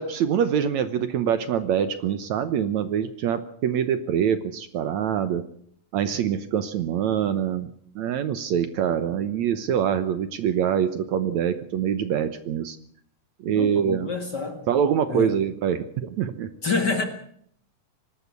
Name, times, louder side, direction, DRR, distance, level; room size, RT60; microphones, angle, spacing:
voice 1, 0.0-5.4 5.9-12.8 13.4-14.1 14.7-16.5, right 8 dB, 65° right, 11 dB, 2.1 m, -25 dB
voice 2, 13.5-14.6 15.1-15.4 16.6-17.0, left 4 dB, 35° left, 6 dB, 2.1 m, -27 dB
25.0 x 12.5 x 8.4 m, 0.64 s
omnidirectional pair, 3.8 m